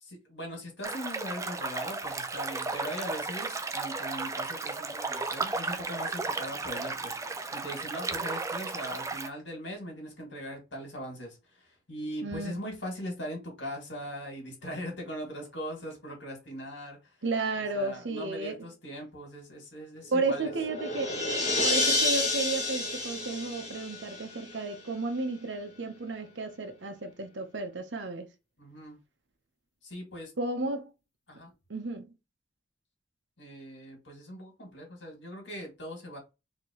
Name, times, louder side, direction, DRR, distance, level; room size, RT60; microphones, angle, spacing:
voice 1, 0.0-17.0 17.6-20.5 21.0-21.1 28.6-29.0 29.8-30.3 31.3-31.5 33.4-36.2, equal, 70° left, 2.4 m, -40 dB
sound 1, 0.8-9.3, right 3 dB, 15° right, 0.4 m, -34 dB
voice 2, 12.2-12.6 17.2-18.7 20.1-21.2 21.6-28.3 30.4-30.9 31.7-32.1, right 3 dB, 75° right, 0.9 m, -33 dB
sound 2, 20.1-24.7, left 2 dB, 35° left, 1.4 m, -30 dB
4.3 x 3.0 x 3.0 m
head